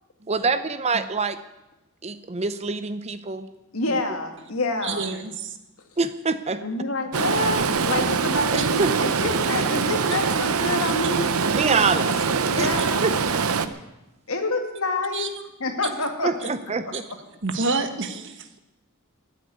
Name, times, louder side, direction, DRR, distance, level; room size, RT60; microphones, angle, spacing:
voice 1, 0.3-1.4 2.0-3.5 6.0-6.6 8.5-9.1 11.5-12.1 12.6-12.7 13.0-13.2 16.2-17.0, right 4 dB, 30° right, 12 dB, 0.6 m, -25 dB
voice 2, 3.7-5.1 6.6-11.3 11.6-12.1 12.5-13.0 14.3-15.3 15.6-16.5, left 2 dB, 65° left, 4 dB, 2.2 m, -28 dB
voice 3, 4.8-5.6 8.6-8.7 11.0-11.1 15.1-15.3 17.4-18.6, right 3 dB, 55° right, 8 dB, 1.4 m, -28 dB
Stream, 7.1-13.7, right 5 dB, 70° right, 0.8 m, -23 dB
14.5 x 8.2 x 9.9 m, 0.98 s
head